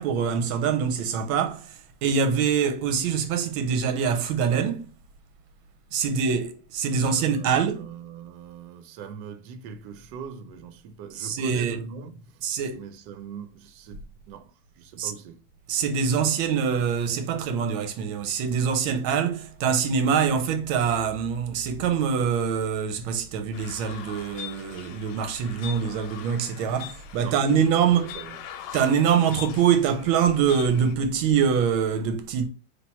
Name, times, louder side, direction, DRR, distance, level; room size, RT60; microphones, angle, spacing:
voice 1, 0.0-1.7 2.0-4.9 5.9-7.8 11.2-11.8 12.4-12.8 15.0-15.1 15.7-28.2 28.7-32.5, right 7 dB, 90° right, 1.5 m, -24 dB
voice 2, 6.9-12.5 12.7-15.4 27.2-28.7, right 6 dB, 75° right, 1.1 m, -41 dB
sound 1, 23.5-31.0, left 11 dB, 75° left, 1.2 m, -42 dB
3.4 x 2.8 x 4.2 m
omnidirectional pair, 2.2 m